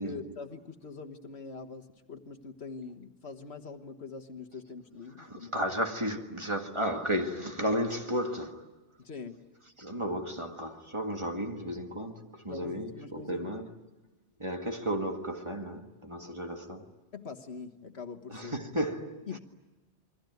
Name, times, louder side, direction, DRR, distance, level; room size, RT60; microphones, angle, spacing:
voice 1, 0.0-5.5 9.0-9.3 12.5-13.5 17.1-18.5 19.3-19.4, left 4 dB, 60° left, 1.6 m, -43 dB
voice 2, 5.2-8.7 9.8-13.7 14.4-16.9 18.3-19.4, equal, 25° right, 1.8 m, -34 dB
28.5 x 22.5 x 9.3 m
omnidirectional pair, 1.2 m